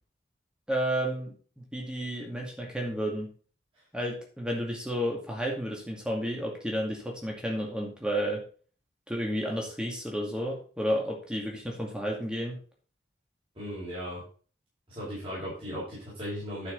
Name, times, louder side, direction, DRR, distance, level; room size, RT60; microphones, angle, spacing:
voice 1, 0.7-3.3 3.9-8.4 9.1-12.6, equal, 5° right, -1 dB, 2.3 m, -31 dB
voice 2, 13.5-14.2 14.9-16.7, equal, 30° right, -9 dB, 5.9 m, -37 dB
11.5 x 6.2 x 4.1 m, 0.41 s
head